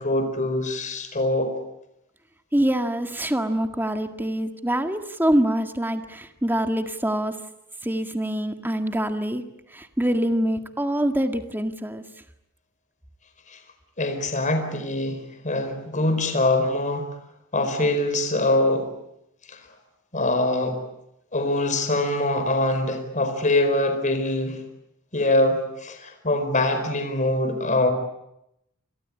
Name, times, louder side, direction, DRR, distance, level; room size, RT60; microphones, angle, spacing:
voice 1, 0.0-1.5 13.5-13.6 14.0-17.1 17.5-18.9 19.5-19.6 20.1-20.8 21.3-24.6 25.1-27.9, left 1 dB, 35° left, 7 dB, 4.5 m, -23 dB
voice 2, 2.5-7.4 7.8-9.4 9.7-12.0, right 1 dB, 10° right, 7 dB, 1.8 m, -25 dB
29.0 x 23.0 x 8.6 m, 0.81 s
head